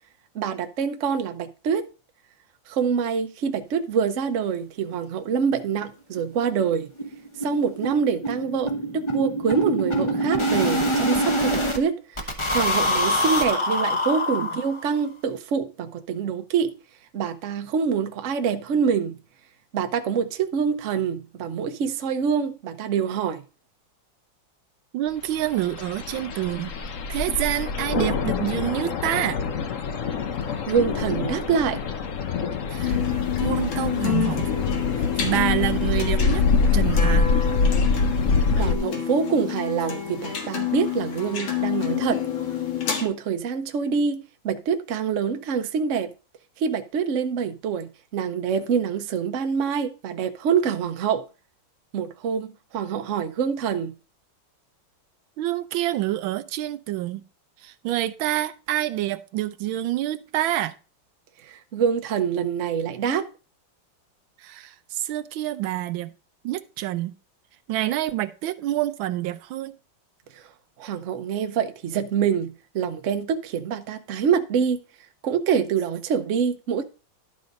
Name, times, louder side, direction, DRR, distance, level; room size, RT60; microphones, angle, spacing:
voice 1, 0.3-1.8 2.7-6.9 7.4-16.7 17.1-19.2 19.7-23.4 30.7-31.8 38.5-42.2 43.0-46.1 46.6-51.2 51.9-53.9 61.4-63.2 70.3-70.4 70.8-74.8 75.2-76.8, right 7 dB, 55° right, 0.9 m, -25 dB
sound 1, 4.9-5.0 5.3-5.4 5.8-5.9 6.2-6.3 6.6-11.8 12.2-15.0, equal, 20° left, 0.8 m, -25 dB
voice 2, 24.9-26.7 27.1-29.4 32.7-33.0 33.4-34.5 35.0-36.4 36.7-37.3 55.4-57.2 57.6-60.7 64.4-66.1 66.4-67.1 67.7-69.8, right 14 dB, 85° right, 1.4 m, -27 dB
sound 2, 25.4-38.7, left 4 dB, 55° left, 0.9 m, -25 dB
sound 3, 32.8-43.1, left 10 dB, 85° left, 2.4 m, -28 dB
11.5 x 4.2 x 5.1 m
omnidirectional pair, 2.2 m